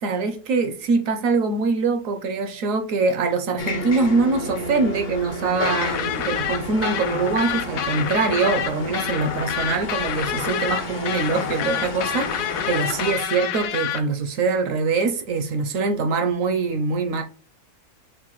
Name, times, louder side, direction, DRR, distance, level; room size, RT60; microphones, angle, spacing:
voice 1, 0.0-17.2, right 4 dB, 70° right, 0.9 m, -23 dB
sound 1, 3.6-13.1, left 1 dB, 60° left, 0.5 m, -31 dB
sound 2, 5.7-14.0, left 9 dB, 85° left, 1.1 m, -27 dB
6.4 x 2.2 x 3.0 m
omnidirectional pair, 1.6 m